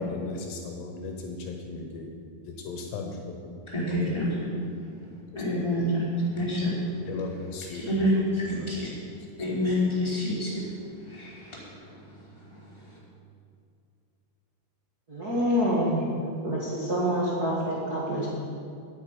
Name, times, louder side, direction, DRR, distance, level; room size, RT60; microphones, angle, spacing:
voice 1, 0.0-2.1 2.5-3.5 3.9-4.2 5.3-5.4 5.8-5.9 7.0-8.2 8.6-8.9, left 3 dB, 75° left, 2 dB, 3.0 m, -37 dB
voice 2, 3.7-4.5 5.3-6.8 7.7-8.9 9.4-10.6 11.0-12.0 12.5-12.6, left 1 dB, 5° left, -7 dB, 3.4 m, -28 dB
voice 3, 15.1-18.3, equal, 65° right, -7 dB, 0.9 m, -27 dB
9.7 x 9.0 x 9.4 m, 2.4 s
omnidirectional pair, 5.4 m